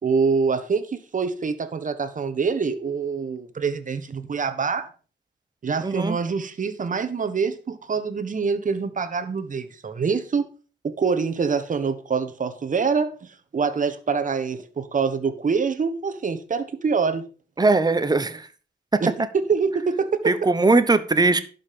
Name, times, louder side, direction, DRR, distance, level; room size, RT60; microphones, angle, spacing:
voice 1, 0.0-4.9 5.6-10.4 10.8-17.2 19.0-20.4, right 5 dB, 40° right, 10 dB, 1.3 m, -25 dB
voice 2, 5.8-6.2 17.6-18.5 20.3-21.4, right 3 dB, 20° right, 12 dB, 1.0 m, -20 dB
11.5 x 5.6 x 5.5 m, 0.38 s
wide cardioid pair, 115°, 19 cm